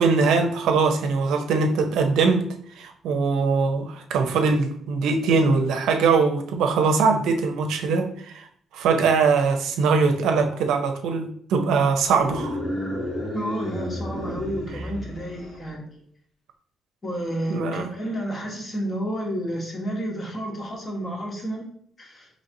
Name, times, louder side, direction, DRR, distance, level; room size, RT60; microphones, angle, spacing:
voice 1, 0.0-2.4 2.8-8.5 8.7-12.6 17.5-17.8, right 4 dB, 85° right, 5 dB, 0.5 m, -21 dB
sound 1, 12.0-15.7, left 1 dB, 55° left, 1.6 m, -32 dB
voice 2, 13.3-16.0 17.0-21.7 22.0-22.3, equal, 35° left, -1 dB, 1.2 m, -31 dB
4.0 x 3.2 x 2.6 m, 0.63 s
cardioid pair, 90°, 0 cm